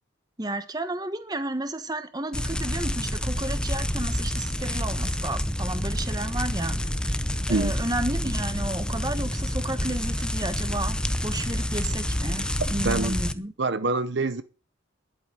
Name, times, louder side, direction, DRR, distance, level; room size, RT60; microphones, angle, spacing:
voice 1, 0.4-6.8 7.5-11.0 11.2-13.5, right 1 dB, 20° right, 1.3 m, -32 dB
sound 1, 2.3-13.3, equal, 5° left, 0.7 m, -28 dB
voice 2, 12.8-13.1 13.6-14.4, right 3 dB, 60° right, 0.8 m, -25 dB
11.0 x 8.4 x 9.9 m
head